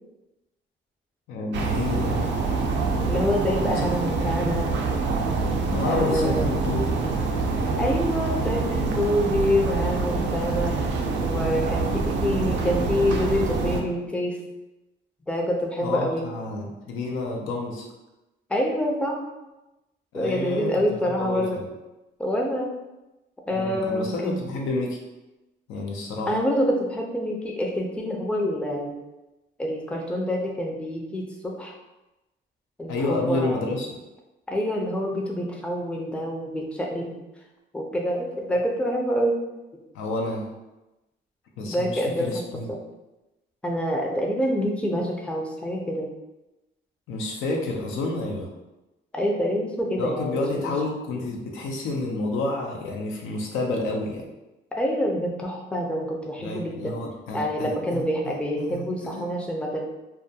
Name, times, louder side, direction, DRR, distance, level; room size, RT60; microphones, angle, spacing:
voice 1, 1.3-2.8 3.5-4.3 5.7-7.6 10.5-10.8 15.8-17.8 20.1-20.8 21.1-21.7 23.5-25.0 25.7-26.4 32.9-34.0 39.9-40.5 41.6-42.7 47.1-48.5 50.0-54.3 56.4-59.3, left 2 dB, 90° left, 0 dB, 0.5 m, -30 dB
sound 1, 1.5-13.8, right 3 dB, 65° right, 0.4 m, -25 dB
voice 2, 3.1-4.7 5.8-6.6 7.8-10.8 11.2-14.4 15.3-16.3 18.5-19.2 20.1-21.6 22.2-22.7 23.5-24.4 26.3-29.0 29.6-31.7 32.8-33.7 34.5-37.1 37.7-39.4 41.6-42.4 42.7-42.8 43.6-46.1 49.1-50.7 54.8-56.9 57.3-59.8, equal, 5° left, 0 dB, 0.4 m, -26 dB
2.3 x 2.2 x 2.7 m, 1.0 s
cardioid pair, 90°, 20 cm